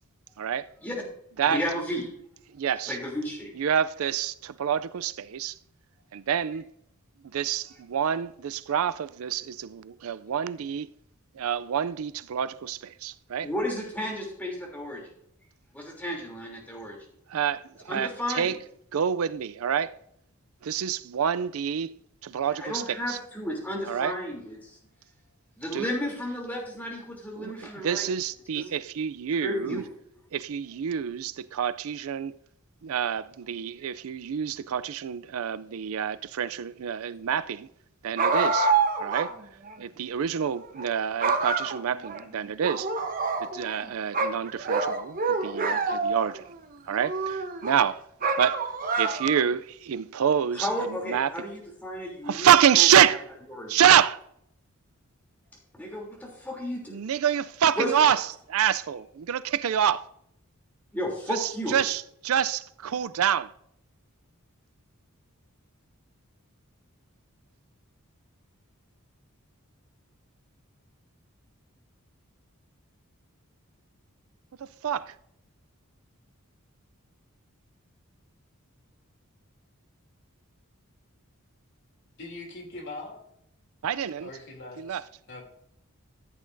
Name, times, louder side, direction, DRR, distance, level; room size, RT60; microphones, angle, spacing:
voice 1, 0.4-0.7 1.4-1.6 2.5-3.0 3.6-5.5 6.1-6.6 7.3-10.9 11.4-13.5 17.3-18.6 18.9-19.9 20.6-23.2 23.9-24.1 25.7-25.9 27.4-29.8 30.3-32.4 32.8-37.7 38.0-38.7 39.0-39.3 39.8-42.9 43.4-46.5 46.9-48.0 48.4-48.6 49.0-51.3 52.2-53.3 53.7-54.2 56.9-60.1 61.3-63.5 74.6-75.1 83.8-84.3 84.8-85.0, right 8 dB, 75° right, 0.4 m, -27 dB
voice 2, 1.5-2.1 2.9-3.5 13.4-15.0 15.7-17.0 17.9-18.5 22.5-24.8 25.6-28.1 28.5-28.7 29.4-29.9 50.5-52.5 52.8-52.9 53.5-53.7 55.8-57.0 57.8-57.9 60.9-61.8, equal, 10° left, 3.1 m, -33 dB
sound 1, 38.2-39.3 39.7-39.8 40.6-40.9 41.2-42.2 42.6-43.8 44.1-46.4 46.9-47.7 48.2-49.5, right 4 dB, 40° right, 1.0 m, -27 dB
voice 3, 82.2-83.2 84.2-85.0 85.3-85.4, left 2 dB, 55° left, 2.8 m, -41 dB
14.5 x 8.5 x 2.6 m
head